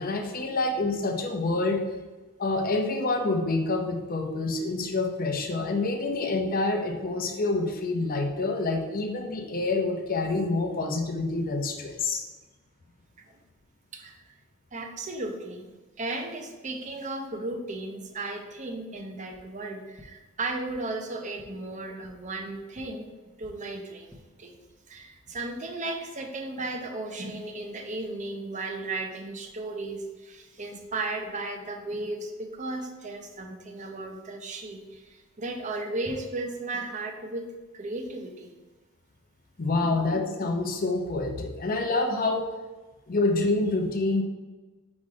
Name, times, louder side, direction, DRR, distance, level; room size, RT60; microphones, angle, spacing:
voice 1, 0.0-1.8 2.4-12.3 39.6-42.5 43.1-44.2, left 2 dB, 40° left, 4 dB, 0.7 m, -27 dB
voice 2, 13.9-14.2 14.7-15.7 16.0-23.1 23.4-24.6 24.9-37.5 37.7-38.5 39.8-39.9, right 2 dB, 35° right, 3 dB, 0.7 m, -35 dB
sound 1, 19.3-19.4 19.9-20.0 20.6-20.7 21.3-21.4 22.0-22.1 22.7-22.8 23.4-23.5 23.9-24.2, left 1 dB, 5° right, 1.0 m, -53 dB
4.8 x 4.2 x 4.8 m, 1.2 s
head